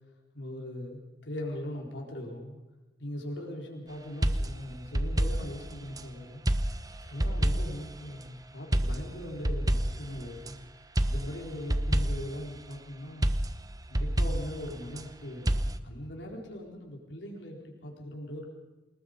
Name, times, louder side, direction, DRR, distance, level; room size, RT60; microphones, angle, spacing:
voice 1, 0.3-2.6 3.0-10.5 11.1-13.3 13.9-18.5, left 1 dB, 80° left, 0 dB, 4.3 m, -40 dB
sound 1, 4.2-6.1 6.5-7.9 8.7-10.5 11.0-12.4 13.2-15.1 15.5-15.8, right 1 dB, 20° right, 1.0 m, -29 dB
28.5 x 19.5 x 5.2 m, 1.1 s
head